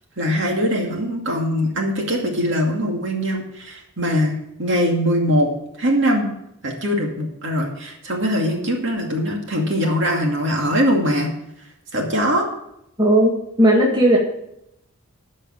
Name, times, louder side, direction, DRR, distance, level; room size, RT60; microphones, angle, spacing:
voice 1, 0.2-5.5 5.8-6.3 6.6-11.3 11.9-12.5, equal, 55° right, 0 dB, 2.4 m, -21 dB
voice 2, 13.0-14.2, right 1 dB, 20° right, -2 dB, 1.9 m, -16 dB
13.5 x 5.5 x 7.6 m, 0.80 s
head